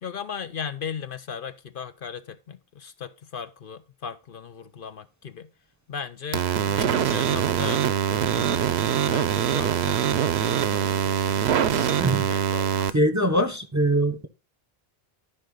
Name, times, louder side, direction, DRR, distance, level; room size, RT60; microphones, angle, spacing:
voice 1, 0.0-5.5 5.9-7.9 8.1-8.5 9.1-11.4 12.3-13.0, left 7 dB, 60° left, 0.9 m, -37 dB
sound 1, 6.3-12.9, right 9 dB, 90° right, 1.0 m, -23 dB
voice 2, 11.8-12.3 12.9-14.3, right 1 dB, 20° right, 0.8 m, -23 dB
12.5 x 5.2 x 3.8 m
omnidirectional pair, 1.0 m